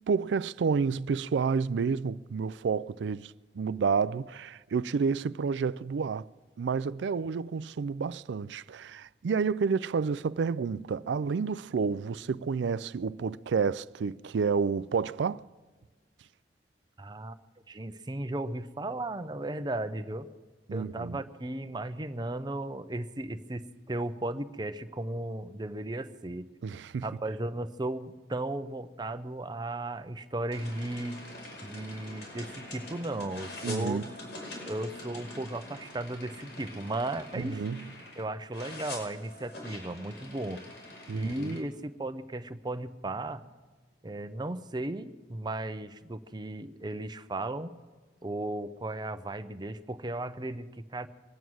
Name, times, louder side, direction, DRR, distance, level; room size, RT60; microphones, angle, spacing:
voice 1, 0.0-6.3 6.6-15.4 20.7-21.2 26.6-27.1 33.6-34.1 37.4-37.9 41.1-41.6, right 5 dB, 85° right, 0.4 m, -30 dB
voice 2, 17.0-17.4 17.7-20.3 20.7-26.5 27.0-31.2 31.6-34.0 34.7-37.6 38.2-40.6 41.1-43.4 44.0-47.7 48.2-51.1, right 2 dB, 25° right, 0.7 m, -35 dB
sound 1, 30.5-38.2 38.5-41.6, left 2 dB, 90° left, 6.1 m, -45 dB
24.0 x 9.1 x 6.3 m
head